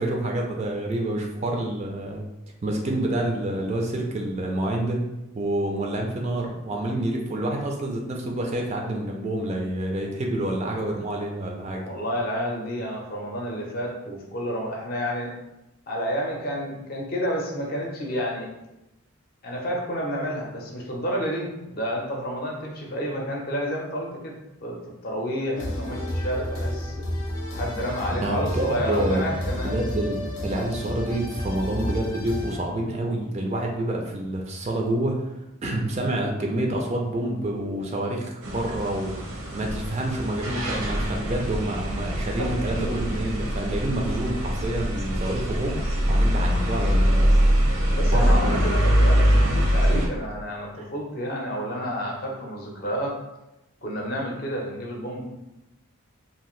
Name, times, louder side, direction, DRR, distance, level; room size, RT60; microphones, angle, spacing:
voice 1, 0.0-2.2 2.6-5.0 5.3-11.8 28.2-35.3 35.6-48.7 50.8-50.9, right 1 dB, 30° right, 0 dB, 0.3 m, -28 dB
voice 2, 11.8-15.3 15.9-18.5 19.4-27.0 27.5-29.8 47.9-53.2 53.8-55.2, equal, 45° left, -1 dB, 0.6 m, -30 dB
sound 1, 25.5-32.6, left 1 dB, 90° left, 0.7 m, -31 dB
sound 2, 38.4-50.1, equal, 85° right, 0.6 m, -23 dB
2.7 x 2.4 x 3.1 m, 0.96 s
head